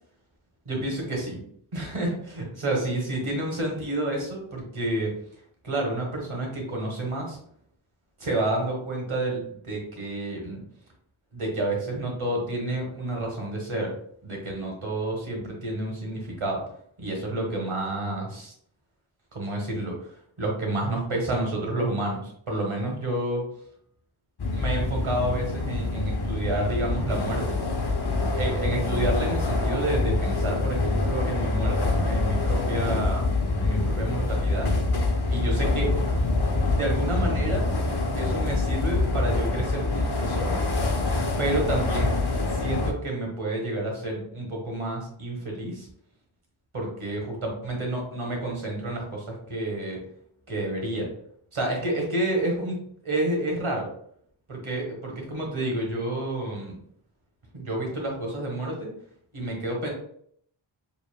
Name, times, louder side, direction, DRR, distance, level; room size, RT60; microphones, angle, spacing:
voice 1, 0.6-1.4 1.7-5.1 5.6-7.4 8.2-10.6 11.3-13.9 14.2-16.6 17.0-18.5 19.3-23.4 24.5-27.6 28.3-33.2 33.6-34.7 35.3-35.9 36.6-37.7 38.1-40.6 41.4-42.1 42.5-45.9 46.7-50.0 50.5-51.1 51.5-52.8 53.0-53.9 54.5-56.8 57.5-58.9 59.3-59.9, right 1 dB, 85° right, 0 dB, 1.5 m, -29 dB
sound 1, 24.4-42.9, left 2 dB, 55° left, 0.7 m, -25 dB
5.1 x 3.1 x 2.2 m, 0.65 s
wide cardioid pair, 55°, 48 cm